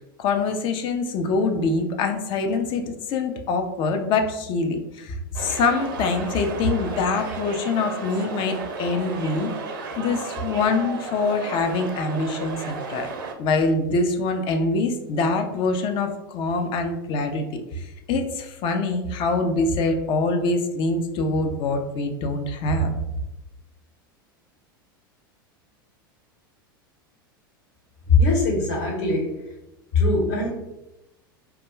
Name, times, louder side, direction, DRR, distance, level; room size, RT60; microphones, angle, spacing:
voice 1, 0.2-9.5 10.0-13.1 13.4-22.9, left 3 dB, 45° left, 6 dB, 0.4 m, -24 dB
sound 1, 5.3-13.3, right 4 dB, 70° right, 0.5 m, -34 dB
voice 2, 28.1-29.4 29.9-30.5, left 3 dB, 60° left, -2 dB, 1.0 m, -20 dB
2.3 x 2.1 x 3.0 m, 0.94 s
hypercardioid pair, 90°, 12 cm